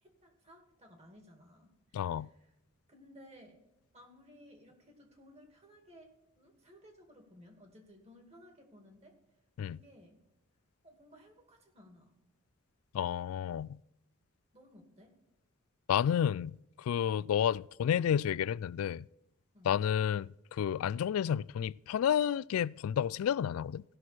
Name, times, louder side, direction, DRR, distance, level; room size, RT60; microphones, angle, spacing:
voice 1, 0.0-2.5 2.9-3.6 3.9-9.2 9.6-10.2 10.8-12.2 14.5-15.2 19.5-19.8, equal, 30° right, 2.4 m, -58 dB
voice 2, 1.9-2.3 9.6-9.8 12.9-13.8 15.9-19.0 19.6-23.8, left 9 dB, 80° left, 0.3 m, -31 dB
16.5 x 6.3 x 4.3 m
head